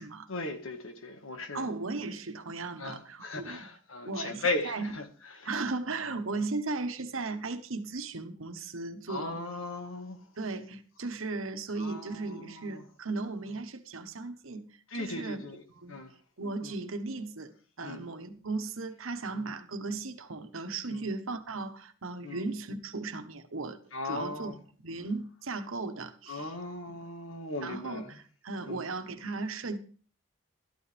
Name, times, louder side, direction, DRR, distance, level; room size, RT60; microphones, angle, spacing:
voice 1, 0.3-1.7 2.8-5.1 5.4-5.5 9.1-10.2 11.8-12.8 14.9-15.6 15.9-16.1 16.6-16.7 17.8-18.0 19.4-19.5 20.9-21.1 22.2-22.5 23.9-24.6 26.3-28.2 28.6-28.9, left 2 dB, 90° left, 1.8 m, -37 dB
voice 2, 1.5-3.6 4.0-4.9 5.4-9.4 10.4-14.7 15.0-15.4 15.8-16.0 16.4-23.8 24.0-24.5 24.8-26.5 26.9-27.0 27.6-29.8, right 3 dB, 90° right, 1.2 m, -36 dB
13.5 x 11.5 x 3.4 m
head